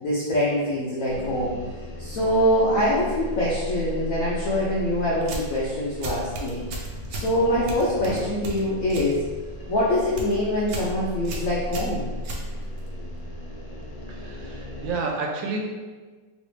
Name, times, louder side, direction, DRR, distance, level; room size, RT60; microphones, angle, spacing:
voice 1, 0.0-1.6 2.0-6.6 7.1-9.2 9.7-12.1, left 1 dB, 75° left, -6 dB, 0.7 m, -24 dB
sound 1, 1.1-15.0, equal, 40° left, 0.5 m, -36 dB
sound 2, 5.2-5.6 6.0-7.3 7.7-9.1 9.5-9.8 10.0-10.3 10.7-10.9 11.2-12.9, right 2 dB, 70° right, 0.9 m, -35 dB
voice 2, 14.1-15.6, right 3 dB, 85° right, 1 dB, 1.3 m, -31 dB
3.1 x 3.0 x 3.2 m, 1.4 s
omnidirectional pair, 2.0 m